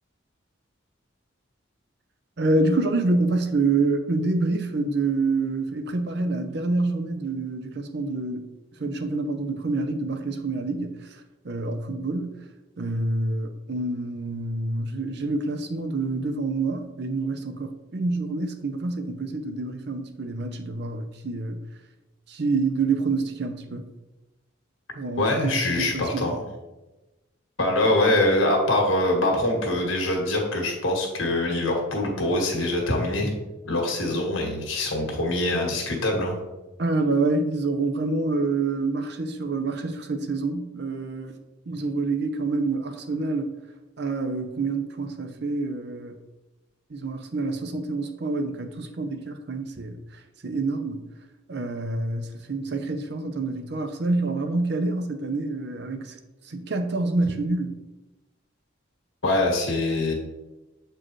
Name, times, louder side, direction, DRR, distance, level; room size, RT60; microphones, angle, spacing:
voice 1, 2.4-8.5 8.8-11.2 11.4-12.4 12.8-21.6 22.3-23.9 25.0-26.3 36.8-41.4 41.7-43.6 44.0-46.2 46.9-51.0 51.5-56.2 56.5-57.7, right 3 dB, 55° right, 7 dB, 0.6 m, -27 dB
voice 2, 25.2-26.4 27.6-33.3 33.6-36.3 59.2-60.1, left 1 dB, 85° left, 0 dB, 1.7 m, -24 dB
7.5 x 4.5 x 3.1 m, 1.1 s
head